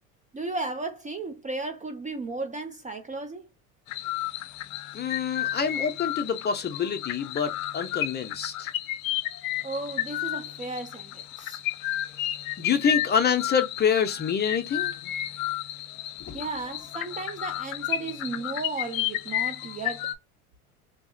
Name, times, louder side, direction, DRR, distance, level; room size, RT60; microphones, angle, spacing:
voice 1, 0.3-3.5 9.6-11.6 16.3-20.1, right 3 dB, 20° right, 0.5 m, -34 dB
sound 1, 3.9-20.2, left 14 dB, 75° left, 0.6 m, -32 dB
voice 2, 4.9-8.7 12.6-14.9 16.2-16.4, left 7 dB, 25° left, 0.6 m, -26 dB
2.9 x 2.6 x 2.6 m
hypercardioid pair, 85°, 42 cm